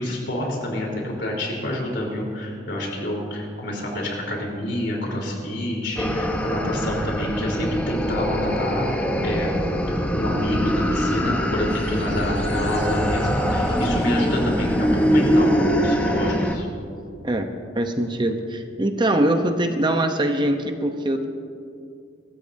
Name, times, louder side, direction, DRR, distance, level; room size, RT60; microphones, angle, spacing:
voice 1, 0.0-9.6 9.9-16.7, left 1 dB, 65° left, -2 dB, 3.8 m, -28 dB
sound 1, 6.0-16.6, equal, 10° left, 0.9 m, -23 dB
sound 2, 11.7-15.0, equal, 35° left, 2.4 m, -33 dB
voice 2, 17.7-21.3, right 1 dB, 25° right, 6 dB, 0.8 m, -22 dB
24.5 x 13.5 x 2.7 m, 2.4 s
head